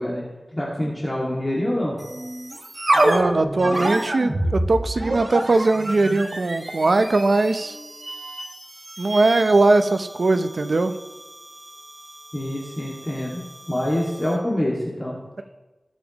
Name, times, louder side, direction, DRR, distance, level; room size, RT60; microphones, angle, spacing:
voice 1, 0.0-2.0 12.3-13.4 13.7-15.4, left 1 dB, 20° left, -5 dB, 2.1 m, -26 dB
sound 1, 2.0-14.5, right 1 dB, 45° right, 1.6 m, -29 dB
voice 2, 2.9-7.8 9.0-10.9, right 2 dB, 65° right, 8 dB, 0.7 m, -20 dB
19.0 x 7.4 x 3.0 m, 1.1 s
wide cardioid pair, 75°, 0 cm